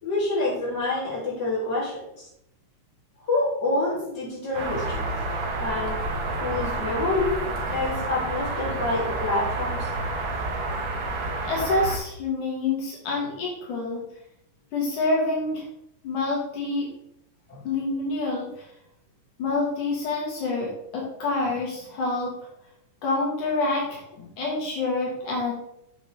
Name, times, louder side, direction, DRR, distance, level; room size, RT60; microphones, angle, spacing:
voice 1, 0.0-2.3 3.3-5.1 5.6-6.0 6.4-7.4 7.7-9.9 17.5-17.6, left 2 dB, 30° left, -6 dB, 3.6 m, -27 dB
sound 1, 4.5-12.0, right 2 dB, 55° right, 1.4 m, -29 dB
voice 2, 11.4-14.0 14.7-15.6 16.0-16.9 17.6-18.7 19.4-22.3 23.0-25.5, left 3 dB, 75° left, -3 dB, 3.1 m, -27 dB
7.4 x 7.2 x 3.5 m, 0.76 s
omnidirectional pair, 3.7 m